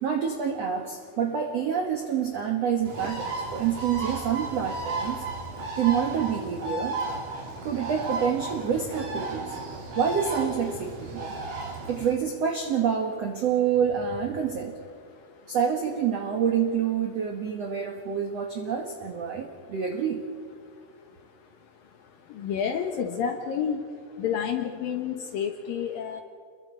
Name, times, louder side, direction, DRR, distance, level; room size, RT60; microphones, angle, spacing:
voice 1, 0.0-5.2 5.8-7.0 7.6-9.6 9.9-11.3 11.9-14.7 15.5-20.2, right 7 dB, 85° right, 3 dB, 1.4 m, -27 dB
Bird, 2.9-12.1, right 3 dB, 45° right, 3.8 m, -34 dB
voice 2, 22.4-23.8 24.2-26.2, left 7 dB, 70° left, 5 dB, 2.2 m, -29 dB
29.0 x 22.5 x 4.5 m, 2.2 s
omnidirectional pair, 5.4 m